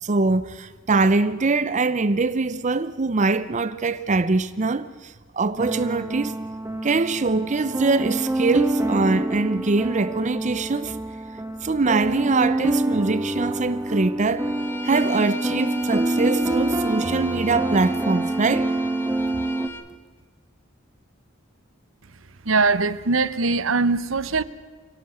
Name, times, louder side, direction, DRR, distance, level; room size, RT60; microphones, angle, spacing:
voice 1, 0.0-6.3 6.8-11.0 11.6-14.5 14.8-18.7, right 3 dB, 40° right, 0.6 m, -23 dB
sound 1, 5.6-19.7, right 1 dB, 15° right, 1.3 m, -26 dB
Bowed string instrument, 14.4-19.9, left 3 dB, 10° left, 1.2 m, -38 dB
voice 2, 22.5-24.4, right 3 dB, 75° right, 0.9 m, -21 dB
25.5 x 17.0 x 7.9 m
head